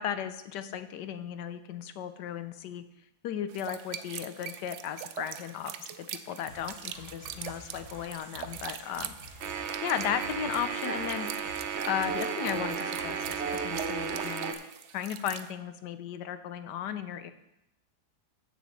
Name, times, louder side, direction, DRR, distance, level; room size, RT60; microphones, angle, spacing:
voice 1, 0.0-2.8 3.2-5.9 6.3-9.1 9.8-11.3 11.9-14.5 14.9-17.3, left 9 dB, 85° left, 11 dB, 1.3 m, -35 dB
sound 1, 3.5-15.5, right 10 dB, 85° right, 0.6 m, -43 dB
sound 2, 6.5-14.4, equal, 60° left, 5.1 m, -50 dB
sound 3, 9.4-14.5, right 6 dB, 55° right, 0.8 m, -33 dB
14.5 x 6.9 x 3.1 m, 0.86 s
omnidirectional pair, 1.8 m